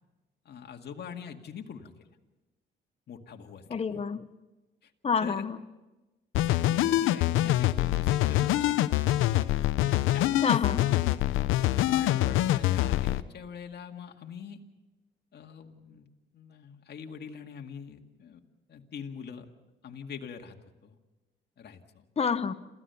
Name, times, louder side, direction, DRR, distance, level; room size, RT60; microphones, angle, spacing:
voice 1, 0.5-2.1 3.1-4.0 4.8-4.9 5.2-5.4 6.4-8.9 10.1-10.5 11.4-11.5 11.9-14.6 15.3-16.1 16.3-18.4 18.7-19.5 19.8-20.6 20.8-21.0 21.6-22.0, left 7 dB, 55° left, 3 dB, 2.1 m, -43 dB
voice 2, 3.7-4.2 5.0-5.6 10.4-11.0 22.2-22.5, left 6 dB, 30° left, 11 dB, 1.0 m, -28 dB
sound 1, 6.3-13.2, left 14 dB, 90° left, 0.7 m, -25 dB
27.5 x 15.5 x 7.0 m, 1.1 s
cardioid pair, 90°, 20 cm